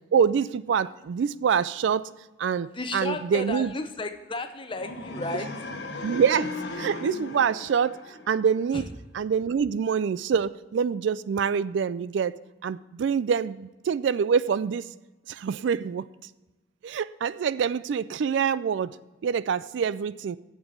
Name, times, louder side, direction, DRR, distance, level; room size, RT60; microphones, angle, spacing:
voice 1, 0.1-2.1 2.4-3.7 6.0-8.0 8.3-8.8 9.1-12.4 12.6-14.9 15.3-16.1 16.8-18.9 19.2-20.4, right 7 dB, 65° right, 0.3 m, -25 dB
voice 2, 2.7-5.5 8.7-8.9, left 2 dB, 25° left, 0.7 m, -33 dB
sound 1, 4.7-8.8, left 2 dB, 55° left, 1.0 m, -37 dB
8.7 x 7.2 x 8.0 m
head